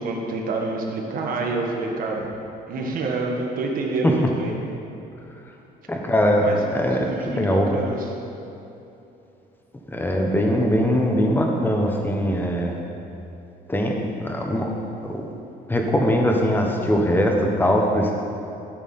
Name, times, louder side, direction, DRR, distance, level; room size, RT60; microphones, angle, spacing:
voice 1, 0.0-2.3 2.7-4.5 6.4-6.6 7.1-8.1, right 3 dB, 55° right, 0 dB, 1.6 m, -27 dB
voice 2, 5.9-7.7 9.9-12.8 13.7-14.7 15.0-15.2 15.7-18.1, equal, 10° left, 1 dB, 1.2 m, -21 dB
13.0 x 5.8 x 4.3 m, 2.8 s
cardioid pair, 110°, 17 cm